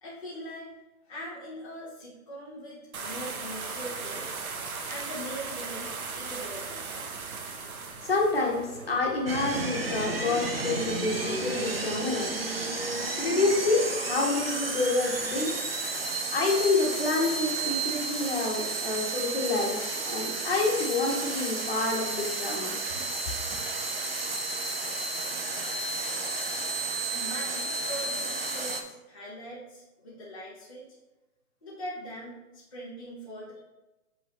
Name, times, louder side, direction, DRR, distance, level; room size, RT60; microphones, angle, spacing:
voice 1, 0.0-0.7 1.0-4.4 4.9-6.8 27.1-30.9 31.6-33.6, equal, 25° left, -10 dB, 0.9 m, -41 dB
sound 1, 2.9-11.0, right 4 dB, 70° right, 0.9 m, -39 dB
voice 2, 8.0-12.4 13.2-15.6 16.3-22.8, left 3 dB, 40° left, -1 dB, 1.3 m, -28 dB
sound 2, 9.3-28.8, right 3 dB, 45° right, 0.5 m, -32 dB
8.0 x 3.9 x 3.0 m, 1.1 s
hypercardioid pair, 180°, 44 cm